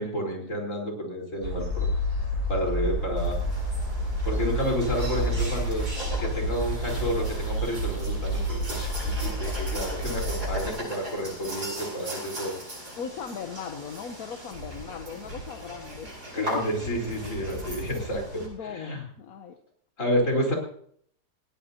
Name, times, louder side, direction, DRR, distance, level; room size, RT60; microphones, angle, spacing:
voice 1, 0.0-1.9 2.5-3.4 4.2-5.9 6.2-12.6 16.3-19.0 20.0-20.5, equal, 45° left, 0 dB, 4.6 m, -30 dB
sound 1, 1.4-10.7, equal, 50° right, 8.1 m, -29 dB
sound 2, 3.2-18.5, equal, 65° right, 8.5 m, -38 dB
voice 2, 13.0-16.5 18.3-19.6, left 7 dB, 60° left, 6 dB, 1.3 m, -38 dB
20.0 x 17.5 x 2.9 m, 0.64 s
omnidirectional pair, 1.9 m